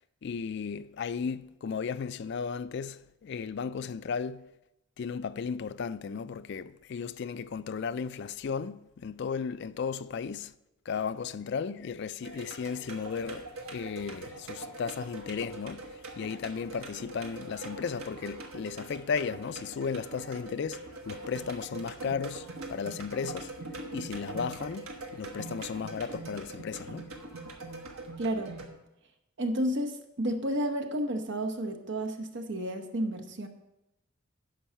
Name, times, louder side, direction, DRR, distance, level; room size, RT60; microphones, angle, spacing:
voice 1, 0.0-4.5 5.0-10.5 10.9-23.5 23.9-27.1, left 6 dB, 50° left, 0.3 m, -35 dB
sound 1, 12.2-28.7, right 2 dB, 70° right, 1.3 m, -43 dB
voice 2, 28.2-28.6 29.4-33.5, right 1 dB, 55° right, 0.9 m, -31 dB
10.0 x 6.2 x 5.6 m
head